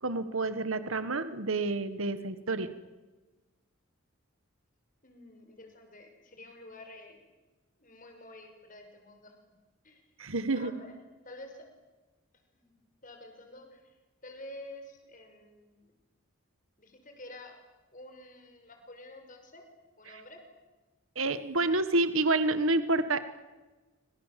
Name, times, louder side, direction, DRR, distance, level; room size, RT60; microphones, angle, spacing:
voice 1, 0.0-2.7 10.2-10.7 21.1-23.2, right 2 dB, 75° right, 11 dB, 1.6 m, -28 dB
voice 2, 5.0-7.2 7.8-9.6 9.8-10.0 10.5-11.0 11.2-11.6 12.5-12.7 13.0-14.0 14.2-15.9 16.8-17.6 17.9-19.6 20.0-20.4, left 1 dB, 40° left, 5 dB, 5.8 m, -49 dB
27.5 x 26.0 x 7.6 m, 1.2 s
head